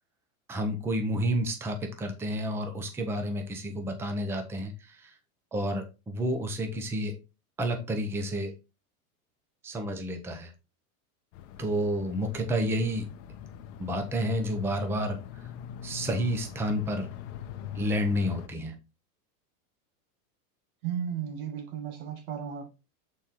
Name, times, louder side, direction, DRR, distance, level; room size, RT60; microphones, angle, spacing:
voice 1, 0.5-5.1 5.5-7.2 7.6-8.5 9.6-10.5 11.6-13.1 13.8-15.2 15.8-17.1 17.8-18.7, equal, 5° right, 0.6 m, -30 dB
sound 1, 11.3-18.5, left 10 dB, 40° left, 0.7 m, -42 dB
voice 2, 20.8-22.7, right 8 dB, 80° right, 2.1 m, -34 dB
8.0 x 4.4 x 3.7 m
supercardioid pair, 155°, 43 cm